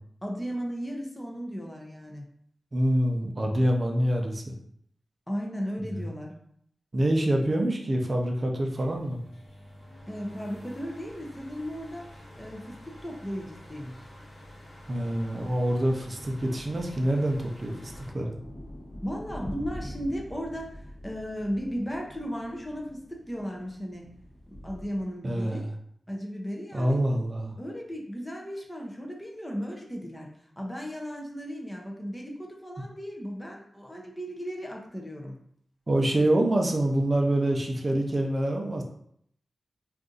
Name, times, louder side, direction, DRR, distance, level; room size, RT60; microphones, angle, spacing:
voice 1, 0.2-2.3 5.3-6.3 10.1-12.1 12.4-14.0 19.0-24.1 24.5-25.6 26.1-27.0 27.6-35.4, equal, 10° left, 0 dB, 0.5 m, -36 dB
voice 2, 2.7-4.6 6.9-9.2 14.9-18.3 25.2-25.7 26.7-27.6 35.9-38.8, right 1 dB, 35° right, 2 dB, 0.5 m, -26 dB
sound 1, 8.8-18.1, left 1 dB, 80° left, 1.3 m, -48 dB
sound 2, 11.1-25.0, equal, 55° left, 0.9 m, -46 dB
2.6 x 2.4 x 3.8 m, 0.68 s
wide cardioid pair, 115°, 0 cm